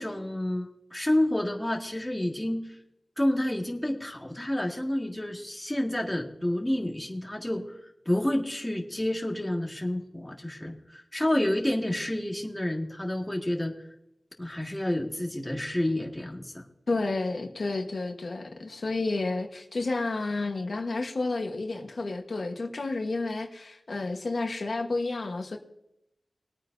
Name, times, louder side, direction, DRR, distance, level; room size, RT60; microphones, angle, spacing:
voice 1, 0.0-2.6 3.2-7.6 8.1-13.7 14.4-16.6, left 1 dB, 10° left, 1.8 m, -29 dB
voice 2, 16.9-25.6, left 3 dB, 65° left, 1.2 m, -31 dB
21.5 x 9.0 x 2.7 m
wide cardioid pair, 75°, 0 cm